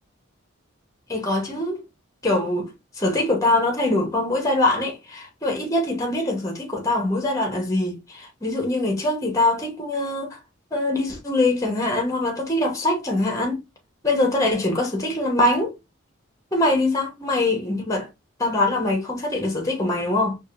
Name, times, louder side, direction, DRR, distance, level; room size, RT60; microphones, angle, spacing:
voice 1, 1.1-1.8 2.2-10.4 10.7-13.6 14.0-15.7 16.5-18.1 18.4-20.4, left 2 dB, 15° left, 0.9 m, -23 dB
4.7 x 2.5 x 2.4 m
head